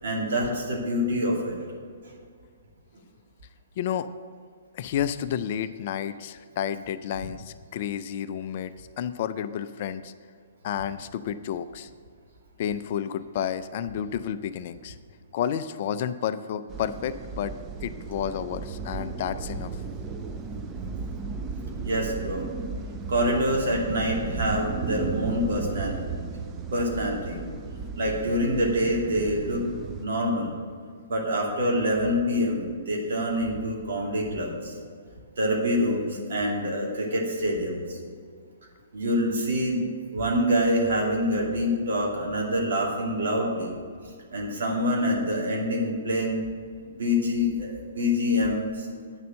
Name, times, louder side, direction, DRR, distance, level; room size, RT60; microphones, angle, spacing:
voice 1, 0.0-1.6 21.8-22.5 23.1-26.2 26.7-27.4 28.0-29.6 30.0-30.5 31.1-34.8 35.4-38.0 38.9-43.8 44.3-46.4 46.9-48.9, equal, 55° right, -1 dB, 2.4 m, -26 dB
voice 2, 3.8-4.1 4.7-8.7 9.0-10.1 10.6-11.9 12.6-15.0 15.3-17.5 17.8-19.7, left 9 dB, 45° left, 13 dB, 0.4 m, -31 dB
sound 1, 16.7-30.1, right 4 dB, 20° right, 0.7 m, -35 dB
8.9 x 6.7 x 6.4 m, 2.1 s
figure-of-eight pair, 120°, 0 cm